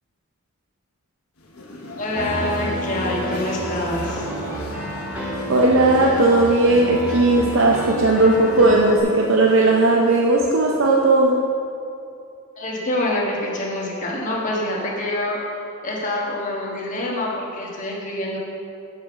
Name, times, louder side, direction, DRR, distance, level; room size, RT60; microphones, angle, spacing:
sound 1, 1.4-11.4, left 1 dB, 85° left, 1.1 m, -37 dB
voice 1, 2.0-4.3 12.6-15.4 15.8-18.4, left 1 dB, 35° left, -3 dB, 1.3 m, -26 dB
Piano, 2.2-9.0, equal, 5° right, 1.5 m, -29 dB
voice 2, 5.5-11.3, right 2 dB, 65° right, -2 dB, 0.6 m, -17 dB
7.8 x 5.3 x 5.8 m, 2.6 s
head